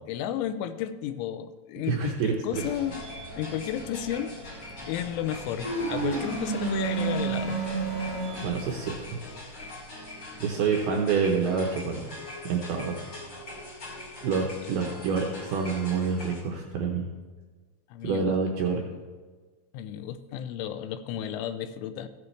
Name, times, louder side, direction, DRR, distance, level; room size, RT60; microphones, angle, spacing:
voice 1, 0.0-3.0 3.4-7.6 17.9-18.4 19.7-22.1, left 10 dB, 85° left, 11 dB, 3.0 m, -33 dB
voice 2, 1.9-2.6 8.4-9.2 10.4-12.1 12.5-13.0 14.2-17.1 18.0-18.8, right 5 dB, 85° right, 1 dB, 2.2 m, -27 dB
sound 1, 2.5-16.4, left 1 dB, 45° left, 1.5 m, -41 dB
sound 2, 5.6-8.7, right 4 dB, 15° left, 1.1 m, -30 dB
15.0 x 9.3 x 3.2 m, 1.4 s
omnidirectional pair, 5.5 m